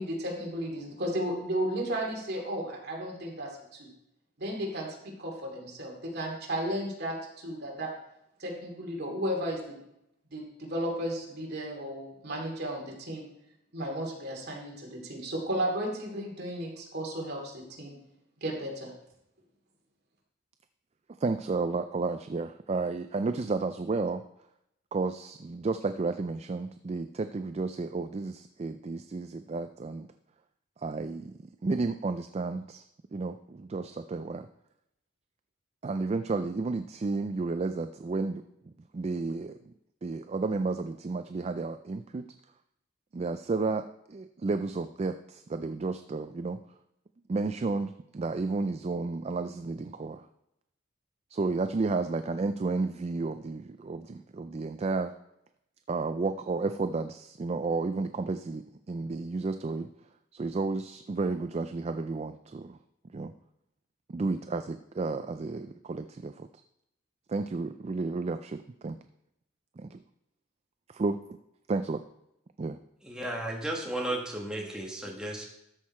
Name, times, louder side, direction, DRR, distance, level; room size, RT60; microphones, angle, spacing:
voice 1, 0.0-3.9 4.4-7.9 8.4-9.8 10.3-13.2 13.7-18.0 18.4-18.9, right 1 dB, 50° right, 0 dB, 2.6 m, -34 dB
voice 2, 21.2-24.2 24.9-30.1 30.8-32.8 33.1-34.5 35.8-39.7 40.0-42.3 43.1-46.6 47.3-50.3 51.3-55.2 55.9-59.9 60.3-62.8 63.1-63.3 64.1-66.5 67.3-69.0 69.8-70.0 70.9-71.2 71.7-72.1 72.6-72.8, right 3 dB, 30° right, 9 dB, 0.3 m, -32 dB
voice 3, 73.0-75.4, right 1 dB, 5° right, -2 dB, 1.5 m, -34 dB
13.0 x 6.4 x 4.3 m, 0.82 s
head